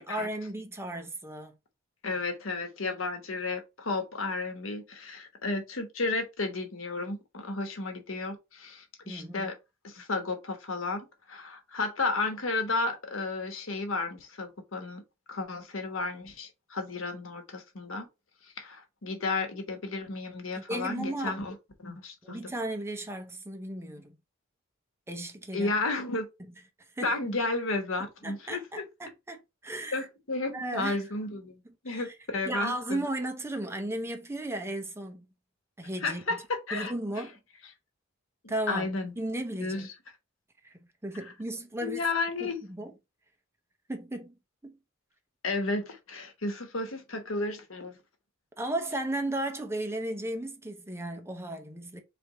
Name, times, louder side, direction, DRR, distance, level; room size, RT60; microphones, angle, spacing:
voice 1, 0.0-1.6 9.1-9.5 20.5-21.4 22.2-24.2 25.1-25.7 27.0-27.1 28.2-30.0 30.5-31.0 31.9-32.1 32.4-35.3 35.8-36.2 36.7-37.4 38.5-38.9 39.2-39.9 40.6-42.0 42.4-42.9 43.9-44.3 44.6-44.8 48.6-52.0, right 1 dB, 15° right, 0.7 m, -35 dB
voice 2, 2.0-9.5 9.8-15.0 15.3-18.1 18.6-21.5 21.8-22.5 25.5-26.3 27.0-28.9 29.9-33.0 36.0-36.9 38.4-39.1 39.6-39.9 41.8-42.6 45.4-48.0, left 3 dB, 90° left, 1.1 m, -33 dB
3.4 x 3.4 x 4.1 m
head